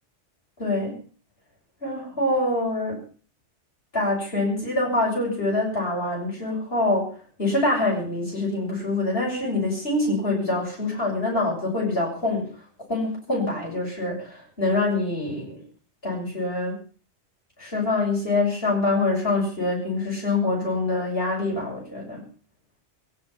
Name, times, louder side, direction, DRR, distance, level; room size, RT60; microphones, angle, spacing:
voice 1, 0.6-0.9 1.8-3.0 3.9-7.1 7.4-12.5 12.9-15.6 16.0-16.7 17.6-22.2, left 2 dB, 60° left, -3 dB, 7.5 m, -25 dB
22.0 x 11.0 x 6.0 m, 0.41 s
omnidirectional pair, 1.2 m